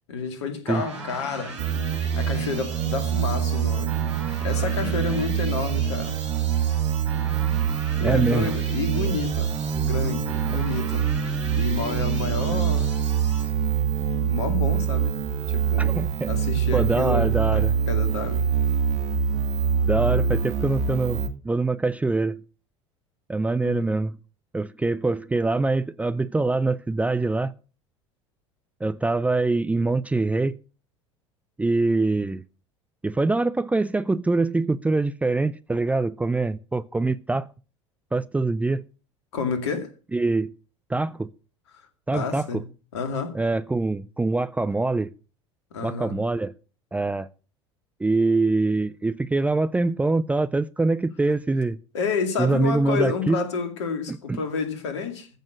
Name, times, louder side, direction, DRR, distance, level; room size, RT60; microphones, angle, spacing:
voice 1, 0.1-1.6 2.1-4.0 4.4-6.2 8.0-11.1 11.5-12.9 13.4-13.5 14.2-15.2 15.5-15.9 16.3-18.4 23.6-23.9 39.3-39.9 42.1-42.6 42.9-43.3 45.7-46.2 51.9-55.3, left 5 dB, 65° left, 2.3 m, -30 dB
sound 1, 0.7-13.4, right 3 dB, 75° right, 3.9 m, -40 dB
sound 2, 1.6-21.3, right 8 dB, 45° right, 1.7 m, -25 dB
voice 2, 8.0-8.5 15.8-16.3 16.7-17.7 19.9-22.4 23.3-24.2 24.5-27.5 28.8-30.6 31.6-32.4 33.0-37.5 38.1-38.8 40.1-40.5 40.9-41.3 42.1-42.6 43.3-45.1 45.8-46.5 46.9-47.3 48.0-51.8 52.4-53.4 54.1-54.4, right 3 dB, 10° right, 0.5 m, -24 dB
14.5 x 6.4 x 6.3 m
figure-of-eight pair, 70°, 15 cm